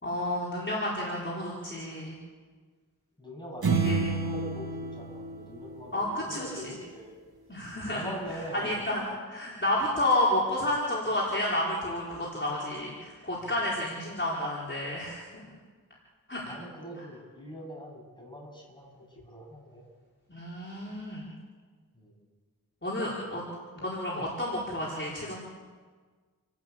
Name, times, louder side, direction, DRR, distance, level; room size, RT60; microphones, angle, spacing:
voice 1, 0.0-2.2 3.8-4.0 5.9-6.5 7.5-8.0 8.5-9.0 9.3-15.4 16.3-16.4 20.3-21.3 22.8-23.4 23.8-25.4, left 1 dB, 30° left, -5 dB, 4.6 m, -30 dB
voice 2, 3.2-7.2 7.8-8.7 13.4-13.6 16.4-19.8 21.9-22.1 23.2-23.4, equal, 10° left, -1 dB, 7.6 m, -43 dB
sound 1, 3.6-6.3, right 4 dB, 75° right, 2.3 m, -30 dB
29.0 x 12.5 x 8.6 m, 1.5 s
wide cardioid pair, 70°, 37 cm